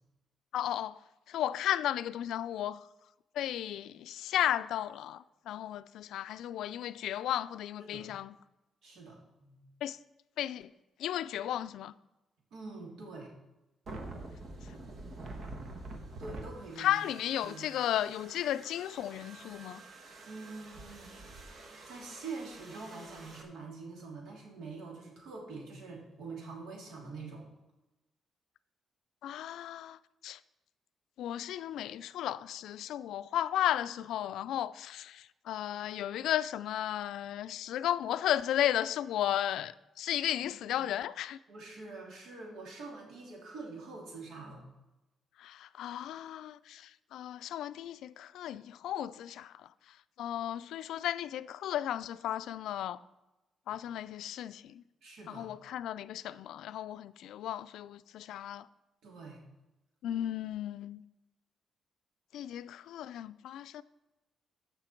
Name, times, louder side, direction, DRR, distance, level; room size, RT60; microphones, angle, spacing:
voice 1, 0.5-1.0 1.3-2.8 3.4-8.3 9.8-10.0 10.4-10.7 11.0-11.9 16.8-19.8 29.2-30.0 30.2-30.4 31.2-41.4 45.4-49.5 50.2-53.0 53.7-54.8 55.3-58.7 60.0-61.0 62.3-63.8, left 11 dB, 85° left, 0.3 m, -34 dB
voice 2, 8.8-9.6 12.5-13.3 16.2-17.0 17.4-17.7 20.2-21.1 21.8-27.5 40.4-40.9 41.5-44.6 53.7-53.8 55.0-55.5 59.0-59.4, right 3 dB, 75° right, 3.1 m, -45 dB
sound 1, 13.9-23.4, right 2 dB, 45° right, 1.3 m, -47 dB
14.5 x 5.8 x 4.5 m
cardioid pair, 170°, 0 cm